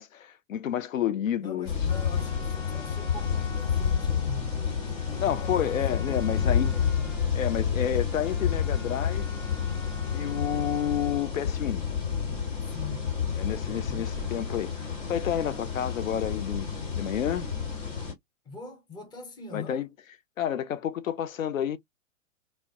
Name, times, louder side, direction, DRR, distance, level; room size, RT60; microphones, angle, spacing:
voice 1, 0.0-1.7 5.2-6.8 7.3-9.4 10.1-11.8 13.4-14.7 15.1-17.5 19.5-19.9 20.4-21.8, left 10 dB, 85° left, 0.5 m, -30 dB
voice 2, 1.4-7.0 12.7-13.2 13.6-14.1 18.5-19.8, left 3 dB, 10° left, 0.6 m, -43 dB
sound 1, 1.6-18.1, left 7 dB, 65° left, 1.4 m, -29 dB
Trumpet, 1.9-11.4, left 4 dB, 35° left, 1.0 m, -48 dB
2.1 x 2.1 x 2.7 m
figure-of-eight pair, 105°, 39 cm